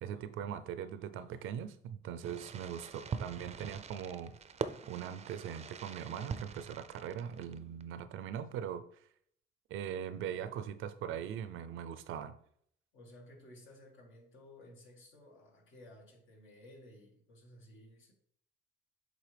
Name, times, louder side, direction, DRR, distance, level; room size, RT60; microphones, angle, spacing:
voice 1, 0.0-4.3 4.9-8.8 9.7-12.3, right 9 dB, 85° right, 0.5 m, -41 dB
Fireworks, 2.2-7.8, right 6 dB, 35° right, 0.4 m, -43 dB
voice 2, 3.1-3.7 12.9-18.1, left 1 dB, 80° left, 1.9 m, -56 dB
7.5 x 3.7 x 3.4 m
cardioid pair, 90°, 20 cm